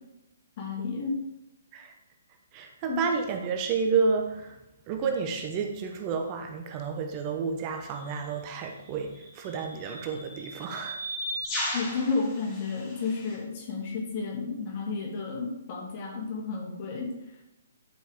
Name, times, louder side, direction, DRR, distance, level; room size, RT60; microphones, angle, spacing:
voice 1, 0.6-1.2 2.9-3.0 11.7-17.1, left 4 dB, 40° left, -1 dB, 2.4 m, -32 dB
voice 2, 2.5-4.5 4.9-11.0, right 5 dB, 30° right, 4 dB, 1.0 m, -30 dB
sound 1, 8.0-8.1 9.2-13.4, equal, 25° left, 3.4 m, -36 dB
10.5 x 5.5 x 3.7 m, 0.90 s
figure-of-eight pair, 130°, 0 cm